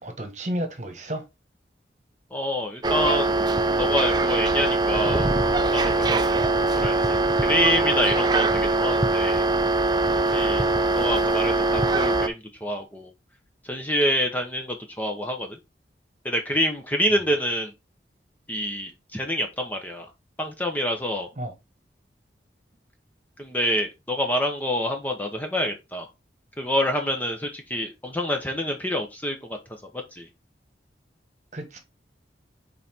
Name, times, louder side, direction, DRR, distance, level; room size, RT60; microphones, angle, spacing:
voice 1, 0.0-1.3 21.4-21.5 31.5-31.8, right 1 dB, 40° right, 1.4 m, -32 dB
voice 2, 2.3-3.3 3.8-5.3 5.7-6.3 6.8-9.4 10.3-10.7 10.9-13.1 13.6-15.6 16.2-17.7 18.5-20.1 20.4-21.3 23.4-26.1 26.6-30.3, equal, 10° left, 0.9 m, -27 dB
sound 1, 2.8-12.3, right 2 dB, 25° right, 0.4 m, -22 dB
5.6 x 4.2 x 4.4 m
head